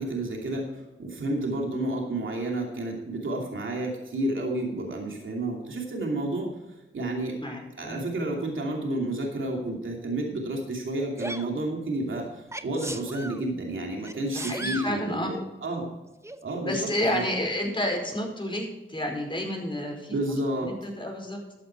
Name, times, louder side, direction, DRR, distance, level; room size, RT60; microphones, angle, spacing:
voice 1, 0.0-6.5 6.9-7.3 7.8-15.9 16.4-17.3 20.1-20.7, right 1 dB, 70° right, 0 dB, 2.8 m, -30 dB
voice 2, 7.4-8.0 14.3-15.4 16.7-20.2 20.6-21.4, left 1 dB, 25° left, 1 dB, 4.9 m, -30 dB
Sneeze, 11.2-11.5 12.5-13.4 14.0-14.9 16.2-16.4, right 1 dB, 15° right, 1.0 m, -36 dB
13.5 x 8.2 x 4.6 m, 1.1 s
cardioid pair, 50°, 21 cm